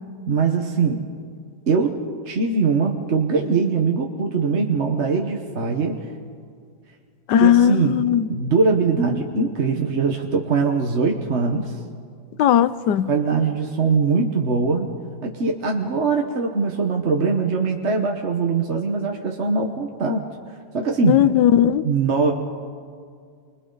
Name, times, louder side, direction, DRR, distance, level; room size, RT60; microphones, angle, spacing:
voice 1, 0.3-1.0 1.7-1.9 2.2-6.0 7.4-8.0 8.3-11.8 13.1-14.9 15.2-20.2 20.7-21.2 21.8-22.3, right 4 dB, 40° right, 2 dB, 1.3 m, -21 dB
voice 2, 7.3-8.3 12.4-13.1 21.1-21.8, left 10 dB, 70° left, 14 dB, 1.2 m, -17 dB
30.0 x 24.5 x 4.0 m, 2.2 s
omnidirectional pair, 2.1 m